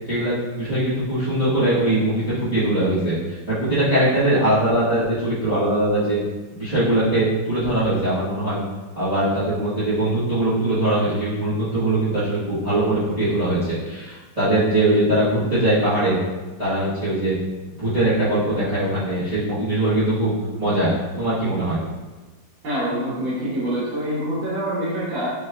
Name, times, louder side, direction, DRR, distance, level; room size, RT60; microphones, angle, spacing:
voice 1, 0.1-6.2 6.5-8.6 8.9-16.2 16.6-17.3 17.8-20.9 21.2-21.8, right 1 dB, 25° right, -13 dB, 1.1 m, -21 dB
voice 2, 22.6-25.3, equal, 80° right, -10 dB, 2.1 m, -25 dB
6.7 x 3.1 x 2.3 m, 1.2 s
omnidirectional pair, 2.1 m